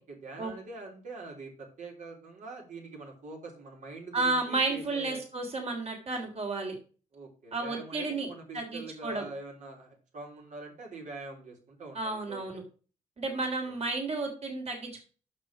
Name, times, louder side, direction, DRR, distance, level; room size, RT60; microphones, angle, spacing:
voice 1, 0.1-5.2 7.1-12.6 13.4-13.8, right 3 dB, 65° right, 0 dB, 3.5 m, -44 dB
voice 2, 4.1-6.7 7.5-8.3 8.5-9.2 12.0-12.6 13.2-15.0, right 3 dB, 50° right, 2 dB, 3.5 m, -32 dB
6.4 x 5.9 x 6.2 m, 0.37 s
cardioid pair, 65°, 14 cm